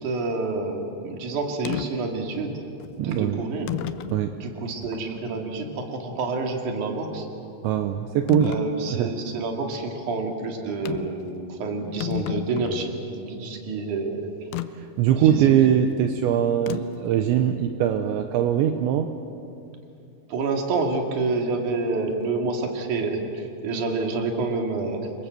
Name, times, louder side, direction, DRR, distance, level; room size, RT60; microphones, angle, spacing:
voice 1, 0.0-2.6 3.0-3.7 4.4-7.3 8.4-14.5 15.2-15.5 20.3-25.1, right 3 dB, 45° right, 3 dB, 3.3 m, -28 dB
sound 1, 1.7-1.9 2.8-2.9 3.7-4.2 4.8-4.9 8.3-8.7 10.9-11.2 11.5-11.6 11.9-12.9 14.5-14.7 16.7-17.1, left 13 dB, 85° left, 2.3 m, -30 dB
voice 2, 3.0-3.4 4.1-4.4 7.6-8.5 8.9-9.1 14.8-19.1, right 10 dB, 75° right, 6 dB, 3.0 m, -22 dB
29.5 x 24.0 x 7.8 m, 2.6 s
omnidirectional pair, 5.7 m